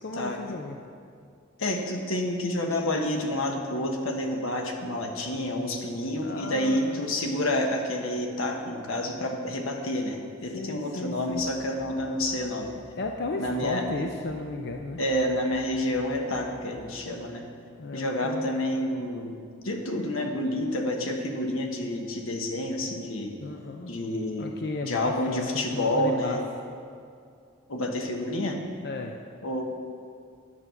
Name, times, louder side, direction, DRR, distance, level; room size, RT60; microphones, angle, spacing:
voice 1, 0.0-0.8 6.2-7.0 7.3-7.5 10.5-11.4 13.0-15.0 17.8-18.5 23.4-23.9 24.4-26.4 28.8-29.2, left 2 dB, 50° left, 3 dB, 0.5 m, -34 dB
voice 2, 1.6-12.7 13.4-13.8 15.0-17.4 17.9-19.4 19.6-23.4 23.9-24.5 24.9-26.4 27.7-28.6 29.4-29.6, left 1 dB, 85° left, 3 dB, 1.2 m, -29 dB
sound 1, 11.1-17.1, right 2 dB, 60° right, 0.9 m, -50 dB
9.8 x 6.1 x 6.8 m, 2.4 s
head